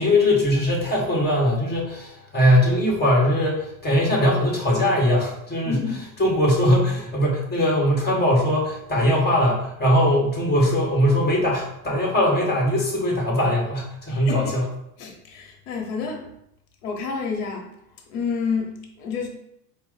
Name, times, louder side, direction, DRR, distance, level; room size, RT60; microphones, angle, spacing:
voice 1, 0.0-5.8 6.2-14.6, left 1 dB, 20° left, -2 dB, 1.7 m, -20 dB
voice 2, 5.6-6.0 14.1-14.6 15.0-16.3 16.8-17.7 18.1-19.3, left 5 dB, 80° left, 2 dB, 1.1 m, -29 dB
4.6 x 2.4 x 4.0 m, 0.76 s
supercardioid pair, 110°, 45 cm